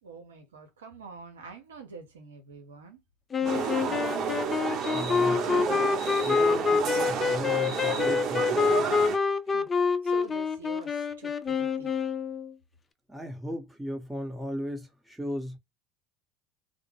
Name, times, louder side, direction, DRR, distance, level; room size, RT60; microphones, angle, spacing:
voice 1, 0.0-3.0 3.4-4.2 9.5-11.9, right 4 dB, 90° right, 0.7 m, -46 dB
sound 1, 3.3-12.5, left 5 dB, 30° left, 0.3 m, -27 dB
sound 2, 3.4-9.2, right 6 dB, 50° right, 0.9 m, -31 dB
voice 2, 4.9-5.6 6.2-9.0 13.1-15.6, equal, 5° right, 0.9 m, -36 dB
2.1 x 2.1 x 3.2 m
hypercardioid pair, 75°, 0 cm